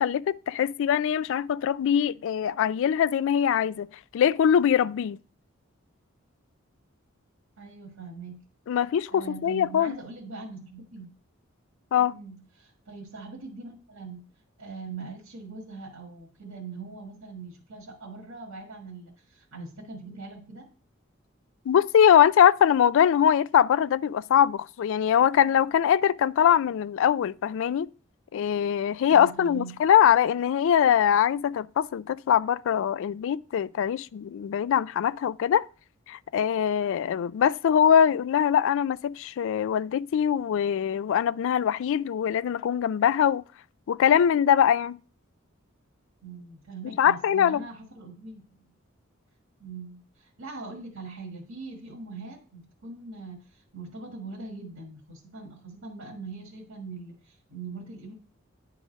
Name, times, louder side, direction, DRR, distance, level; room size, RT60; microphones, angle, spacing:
voice 1, 0.0-5.2 8.7-10.0 11.9-12.1 21.7-27.9 28.3-35.7 36.1-43.4 43.9-45.0 47.0-47.6, left 9 dB, 65° left, 0.3 m, -22 dB
voice 2, 7.6-8.4 9.1-11.1 12.0-14.2 14.6-20.7 29.1-29.8 46.2-48.4 49.6-58.1, right 4 dB, 80° right, 1.6 m, -42 dB
9.7 x 3.8 x 5.1 m
head